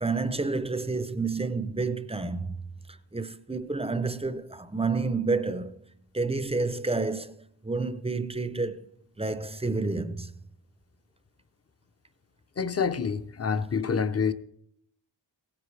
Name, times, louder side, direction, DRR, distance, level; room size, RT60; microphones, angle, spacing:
voice 1, 0.0-2.6 3.1-5.7 6.1-7.3 7.6-8.8 9.2-10.3, right 3 dB, 15° right, 0.5 m, -29 dB
voice 2, 12.6-14.3, left 6 dB, 35° left, 0.6 m, -27 dB
17.0 x 9.9 x 3.2 m
wide cardioid pair, 90°, 46 cm